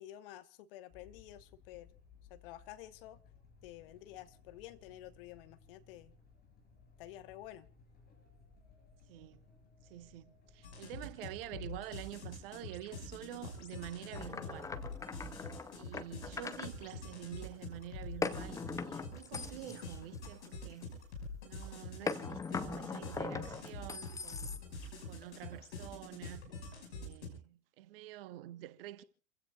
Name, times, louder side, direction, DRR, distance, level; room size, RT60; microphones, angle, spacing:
voice 1, 0.0-1.9 2.3-3.2 3.6-6.1 7.0-7.7, left 13 dB, 50° left, 1.4 m, -51 dB
sound 1, 0.9-20.4, left 4 dB, 25° left, 7.1 m, -62 dB
voice 2, 9.1-9.4 9.9-14.7 15.7-20.9 21.4-24.6 25.1-26.4 26.9-29.0, right 14 dB, 50° right, 1.2 m, -48 dB
sound 2, 10.6-27.3, left 2 dB, 65° left, 5.8 m, -46 dB
sound 3, 14.2-16.7 18.2-20.8 22.1-24.9, left 4 dB, 10° left, 0.7 m, -40 dB
28.5 x 16.0 x 2.4 m
figure-of-eight pair, 90°, 36 cm